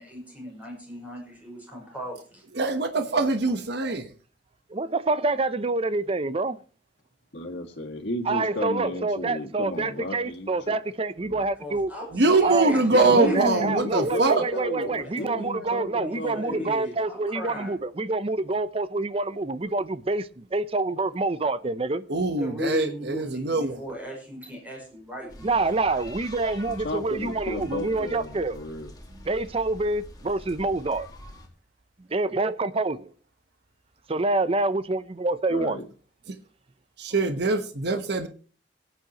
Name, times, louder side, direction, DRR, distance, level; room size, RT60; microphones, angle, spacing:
voice 1, 0.0-2.4 11.6-13.6 14.2-17.8 22.4-25.6 37.1-37.2, left 1 dB, 10° right, 5.6 m, -38 dB
voice 2, 2.5-4.1 12.1-14.4 22.1-23.8 36.3-36.4 37.0-38.3, right 3 dB, 65° right, 1.1 m, -23 dB
voice 3, 4.7-6.6 8.3-11.9 12.4-22.0 25.4-28.6 29.3-31.1 32.1-33.1 34.1-35.8, right 3 dB, 30° right, 0.6 m, -27 dB
voice 4, 7.3-10.8 11.2-11.5 13.0-16.8 26.7-28.9 35.5-35.9, left 1 dB, 65° left, 2.1 m, -33 dB
sound 1, 25.3-31.5, left 1 dB, 20° left, 2.1 m, -45 dB
22.5 x 9.1 x 3.0 m
head